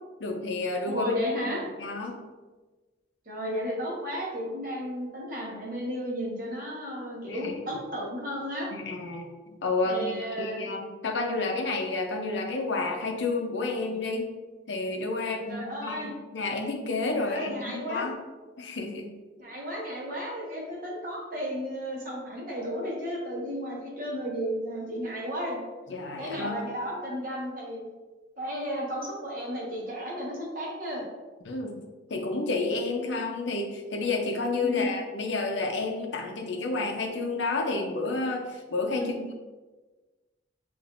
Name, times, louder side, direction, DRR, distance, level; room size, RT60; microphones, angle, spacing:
voice 1, 0.2-1.1 1.4-1.5 1.8-2.2 7.3-7.6 8.7-10.1 10.4-14.3 14.7-18.1 18.6-19.1 25.9-26.6 31.4-31.8 32.1-39.3, left 3 dB, 70° left, 2 dB, 0.6 m, -30 dB
voice 2, 0.8-1.6 3.3-8.7 9.8-10.7 15.5-16.1 17.2-18.1 19.4-25.6 26.2-27.9 28.4-31.0 34.6-34.9 38.9-39.3, equal, 45° right, -3 dB, 1.1 m, -33 dB
5.7 x 2.5 x 2.5 m, 1.3 s
head